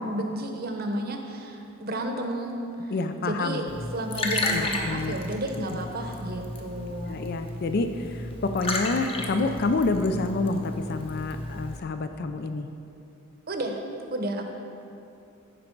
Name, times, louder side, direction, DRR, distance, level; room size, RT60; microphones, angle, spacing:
voice 1, 0.0-2.9 3.2-7.2 13.5-13.8 14.1-14.5, right 1 dB, 45° right, 4 dB, 0.9 m, -32 dB
voice 2, 2.9-3.7 4.5-5.1 7.1-12.7, left 3 dB, 45° left, 8 dB, 0.4 m, -28 dB
Liquid, 3.7-11.8, left 2 dB, 25° left, 0.8 m, -33 dB
15.5 x 5.2 x 4.6 m, 2.8 s
head